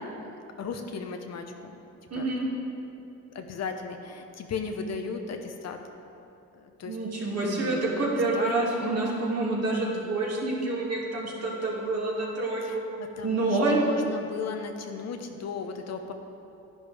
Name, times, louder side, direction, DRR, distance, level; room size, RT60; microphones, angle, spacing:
voice 1, 0.0-1.4 2.1-2.4 3.3-5.8 6.6-7.0 7.4-8.1 8.3-8.5 12.6-16.1, left 5 dB, 60° left, 5 dB, 1.0 m, -36 dB
voice 2, 2.1-2.5 6.8-12.8 13.2-13.8, right 2 dB, 55° right, -4 dB, 2.6 m, -27 dB
10.5 x 10.5 x 3.5 m, 2.7 s
cardioid pair, 90°, 30 cm